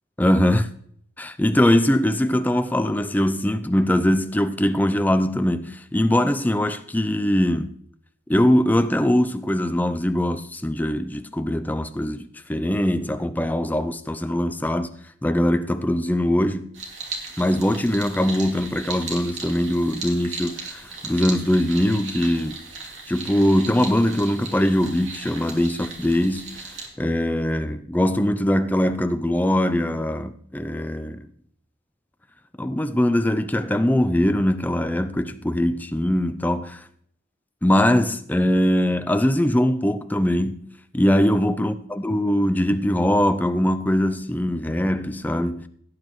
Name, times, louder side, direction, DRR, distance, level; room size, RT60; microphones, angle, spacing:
voice 1, 0.2-0.7 1.2-7.7 8.3-14.9 15.2-16.7 17.4-22.6 23.1-26.6 27.0-31.3 32.6-36.8 37.6-45.7, left 1 dB, 10° left, 0.4 m, -22 dB
sound 1, 16.7-26.9, right 4 dB, 80° right, 2.5 m, -37 dB
17.0 x 9.1 x 3.1 m
head